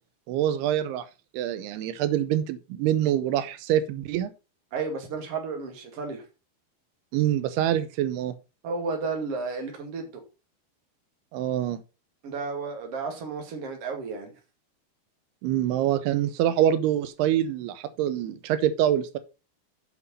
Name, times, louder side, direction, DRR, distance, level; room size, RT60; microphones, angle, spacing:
voice 1, 0.3-1.1 1.3-4.3 7.1-8.3 11.3-11.8 15.4-19.2, right 11 dB, 90° right, 2.7 m, -25 dB
voice 2, 4.7-6.2 8.6-10.2 12.2-14.3, right 4 dB, 45° right, 2.6 m, -32 dB
7.8 x 5.9 x 5.4 m
omnidirectional pair, 4.6 m